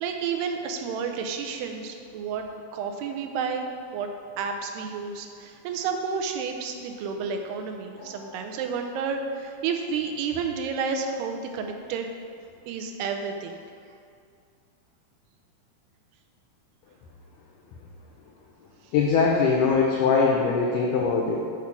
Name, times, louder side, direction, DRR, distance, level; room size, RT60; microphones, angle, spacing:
voice 1, 0.0-2.4 2.7-3.6 3.9-4.1 4.4-12.1 12.7-13.6, right 5 dB, 85° right, 4 dB, 2.8 m, -30 dB
voice 2, 7.9-8.4 18.9-21.4, left 5 dB, 80° left, -1 dB, 1.8 m, -22 dB
7.9 x 6.0 x 5.9 m, 2.3 s
omnidirectional pair, 4.6 m